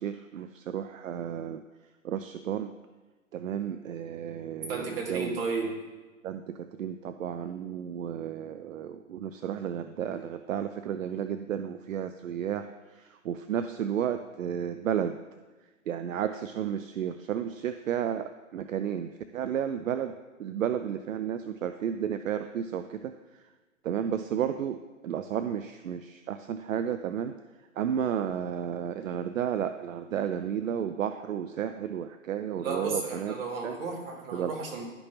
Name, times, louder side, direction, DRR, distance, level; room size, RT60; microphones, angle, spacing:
voice 1, 0.0-1.6 2.0-2.7 3.3-5.4 6.2-15.2 15.9-23.1 23.8-27.3 27.8-33.3 33.6-33.8 34.3-34.6, right 9 dB, 70° right, 9 dB, 0.5 m, -32 dB
voice 2, 4.7-5.7 32.6-34.8, right 4 dB, 45° right, -2 dB, 2.0 m, -33 dB
11.0 x 5.3 x 3.0 m, 1.3 s
figure-of-eight pair, 135°, 41 cm